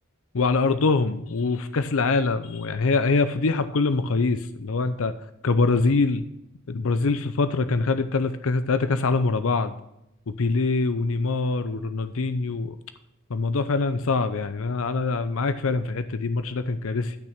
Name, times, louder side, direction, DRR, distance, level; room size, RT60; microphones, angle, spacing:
voice 1, 0.3-5.1 5.4-6.3 6.7-9.7 10.3-12.7 13.3-17.2, left 3 dB, 70° left, 11 dB, 0.6 m, -24 dB
12.0 x 6.3 x 5.9 m, 0.82 s
head